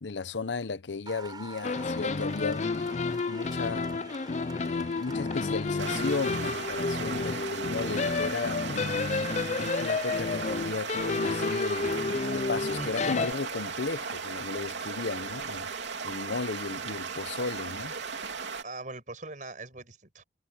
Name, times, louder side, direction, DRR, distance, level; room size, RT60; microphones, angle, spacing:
voice 1, 0.0-2.7 3.3-3.9 4.6-9.2 9.6-11.9 12.3-15.7 16.0-17.9, left 4 dB, 80° left, 0.8 m, -35 dB
Applause, 1.1-16.4, right 3 dB, 25° right, 5.6 m, -50 dB
sound 1, 1.6-13.3, left 4 dB, 40° left, 0.4 m, -30 dB
sound 2, 5.8-18.6, right 5 dB, 80° right, 3.2 m, -36 dB
voice 2, 12.8-13.3 18.6-20.2, right 2 dB, 45° right, 5.7 m, -42 dB
head